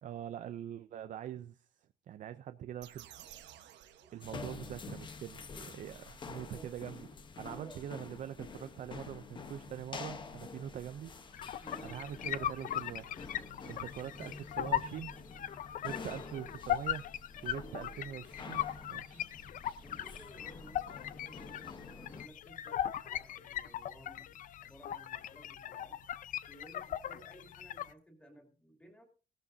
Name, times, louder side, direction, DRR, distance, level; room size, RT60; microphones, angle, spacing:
voice 1, 0.0-3.1 4.1-5.4 5.7-7.0 7.4-11.1 11.8-13.2 13.7-15.1 15.8-17.1 17.4-18.6 18.9-19.2, right 10 dB, 45° right, 10 dB, 0.5 m, -43 dB
sound 1, 2.8-4.9, right 11 dB, 90° right, 1.2 m, -54 dB
voice 2, 4.0-4.6 5.4-5.9 6.5-6.7 7.5-7.8 11.6-11.9 19.1-19.3 19.8-26.0 26.5-29.0, right 1 dB, 5° left, 2 dB, 2.9 m, -56 dB
sound 2, 4.2-22.3, left 4 dB, 25° left, 1.0 m, -48 dB
sound 3, 11.3-27.9, left 11 dB, 50° left, 0.5 m, -39 dB
17.5 x 12.5 x 2.7 m, 0.36 s
cardioid pair, 175°, 18 cm